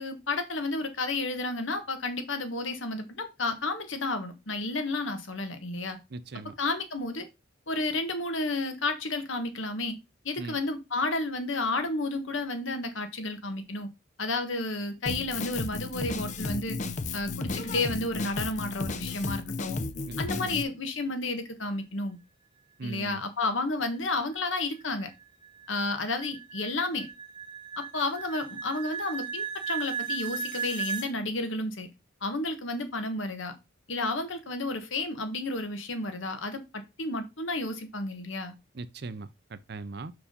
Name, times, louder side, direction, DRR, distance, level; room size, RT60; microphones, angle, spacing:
voice 1, 0.0-6.0 6.6-7.3 7.7-10.0 10.2-13.9 14.2-16.8 17.1-19.8 20.2-22.2 22.8-25.1 25.7-27.1 27.8-31.9 32.2-33.5 33.9-38.5, left 2 dB, 85° left, 1.4 m, -31 dB
voice 2, 6.1-6.5 10.4-10.6 20.1-20.6 22.8-23.2 38.7-40.1, right 3 dB, 55° right, 0.6 m, -39 dB
Drum kit, 15.1-20.6, left 3 dB, 40° left, 0.5 m, -33 dB
sound 1, 23.9-31.1, right 6 dB, 25° right, 0.8 m, -37 dB
5.7 x 4.7 x 5.1 m
head